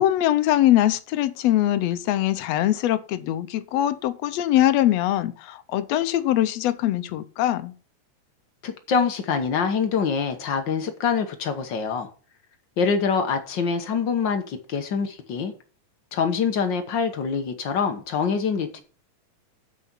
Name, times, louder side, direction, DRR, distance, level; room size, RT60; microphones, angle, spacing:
voice 1, 0.0-7.7, left 13 dB, 75° left, 1.7 m, -22 dB
voice 2, 8.6-12.1 12.8-15.5 16.1-18.8, left 6 dB, 60° left, 1.3 m, -25 dB
7.5 x 6.2 x 7.0 m
omnidirectional pair, 3.4 m